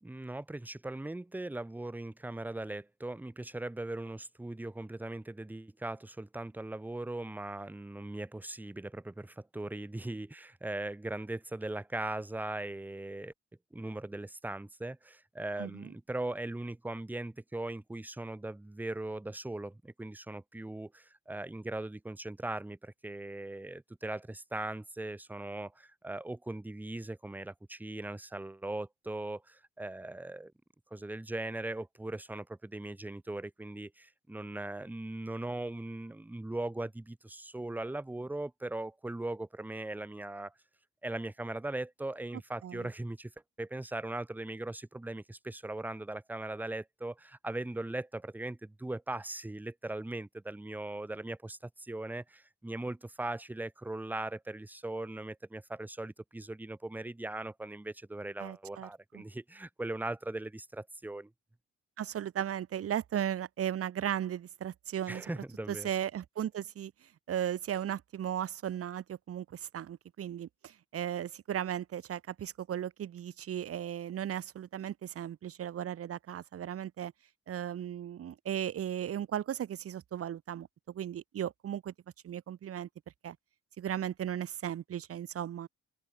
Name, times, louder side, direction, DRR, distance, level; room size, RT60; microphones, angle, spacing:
voice 1, 0.0-13.3 13.7-30.5 30.9-40.5 41.0-43.3 43.6-61.3 65.1-65.9, right 2 dB, 5° right, 0.7 m, -39 dB
voice 2, 15.6-15.9 42.6-42.9 58.4-58.9 59.1-59.2 62.0-65.3 65.7-77.1 77.5-81.9 82.2-82.9 83.2-83.4 83.8-85.7, right 10 dB, 50° right, 0.9 m, -36 dB
open air
cardioid pair, 90°, 30 cm